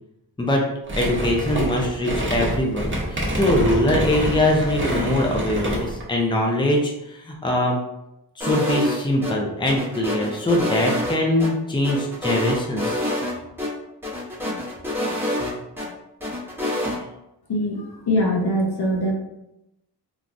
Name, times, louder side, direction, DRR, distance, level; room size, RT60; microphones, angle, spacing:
sound 1, 0.9-6.0, right 1 dB, 30° right, 0.8 m, -26 dB
voice 1, 1.0-7.8 8.4-13.0, left 1 dB, 10° left, 0 dB, 0.6 m, -22 dB
sound 2, 8.4-9.3 9.7-11.5 11.8-13.3 13.6-13.7 14.0-15.9 16.2-17.0, left 1 dB, 5° right, 1.0 m, -26 dB
voice 2, 17.5-19.1, equal, 65° left, 0 dB, 0.8 m, -22 dB
3.3 x 2.4 x 2.6 m, 0.88 s
cardioid pair, 55°, 41 cm